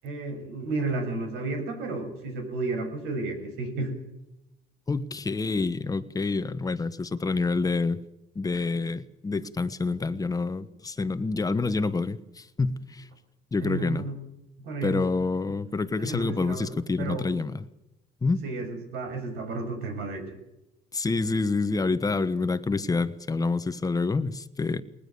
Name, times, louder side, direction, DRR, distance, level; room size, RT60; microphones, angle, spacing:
voice 1, 0.0-3.9 13.6-14.1 14.6-15.0 16.0-16.6 17.0-17.2 18.4-20.4, right 3 dB, 90° right, 6.7 m, -32 dB
voice 2, 4.9-8.0 8.3-13.1 13.5-14.1 14.8-17.6 18.2-18.4 20.9-24.8, left 3 dB, 20° left, 1.3 m, -27 dB
20.0 x 20.0 x 6.9 m
cardioid pair, 110°, 17 cm